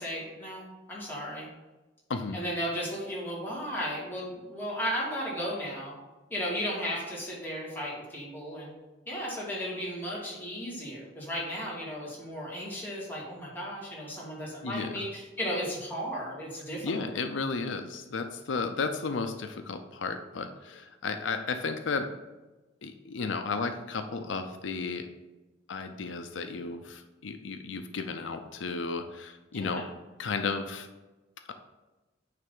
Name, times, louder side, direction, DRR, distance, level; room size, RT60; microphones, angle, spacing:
voice 1, 0.0-1.5 2.3-5.9 6.3-8.7 9.1-16.9 29.5-29.9, equal, 10° left, -6 dB, 2.3 m, -35 dB
voice 2, 14.6-15.1 16.8-22.1 22.8-25.1 25.7-29.9 30.2-30.9, left 4 dB, 85° left, 7 dB, 0.6 m, -33 dB
9.2 x 3.3 x 5.5 m, 1.1 s
head